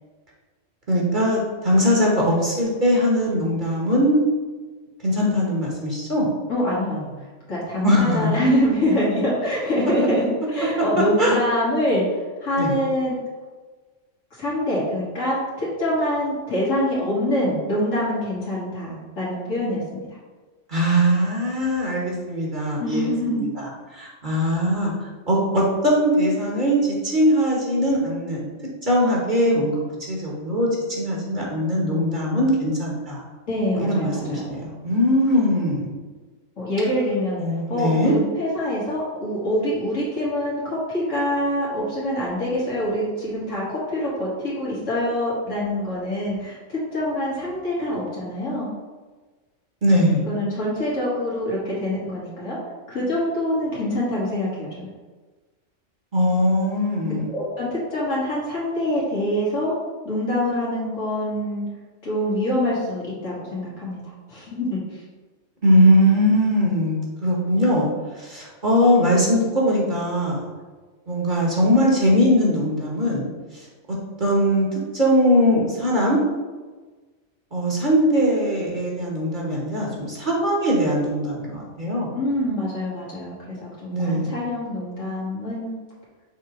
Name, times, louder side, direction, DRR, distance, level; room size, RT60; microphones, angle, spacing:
voice 1, 0.9-4.2 5.0-6.3 7.8-8.3 11.2-11.4 12.6-12.7 20.7-23.5 23.9-24.9 25.3-28.5 28.8-29.8 30.1-30.7 31.0-33.2 33.7-35.9 37.4-38.1 49.8-50.2 56.1-57.3 65.6-67.9 68.2-70.4 71.1-73.7 74.2-76.2 77.5-82.2 83.9-84.3, equal, 40° right, -3 dB, 1.3 m, -20 dB
voice 2, 6.5-7.1 7.5-10.2 10.5-13.1 14.4-20.2 22.8-23.4 33.5-34.4 36.6-37.4 37.7-48.7 50.3-52.6 52.9-54.9 57.1-59.7 60.0-61.6 62.0-64.0 64.3-65.0 82.1-85.7, left 1 dB, 90° left, -7 dB, 2.0 m, -25 dB
6.4 x 3.1 x 4.7 m, 1.3 s
omnidirectional pair, 1.3 m